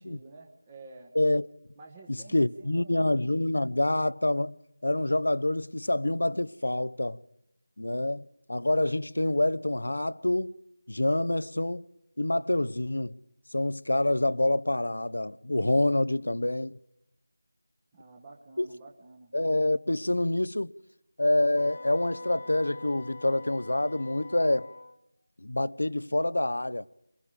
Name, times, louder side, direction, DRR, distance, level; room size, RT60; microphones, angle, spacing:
voice 1, 0.0-1.1 1.8-3.1 17.9-19.3, right 3 dB, 15° right, 1.3 m, -50 dB
voice 2, 1.1-1.5 2.3-4.5 4.8-7.2 7.8-10.5 10.9-11.8 12.2-13.2 13.5-16.8 18.6-18.7 19.3-20.7 21.2-24.7 25.4-26.9, left 1 dB, 80° left, 0.9 m, -27 dB
Wind instrument woodwind instrument, 21.5-25.0, left 3 dB, 35° left, 1.6 m, -44 dB
29.0 x 22.0 x 5.1 m
figure-of-eight pair, 175°, 0 cm